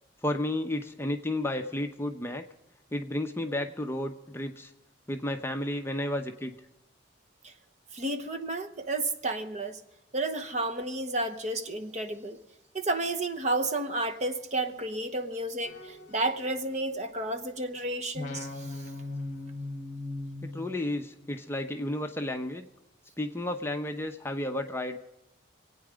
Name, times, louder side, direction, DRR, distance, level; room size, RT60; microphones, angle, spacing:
voice 1, 0.2-2.4 2.9-4.7 5.1-6.5 20.4-22.7 23.2-25.0, left 1 dB, 10° left, 0.7 m, -32 dB
voice 2, 7.9-9.8 10.1-12.4 12.7-18.8, right 2 dB, 35° right, 0.9 m, -31 dB
sound 1, 15.6-17.7 18.1-21.3, left 2 dB, 40° left, 1.5 m, -40 dB
26.0 x 8.9 x 5.1 m
head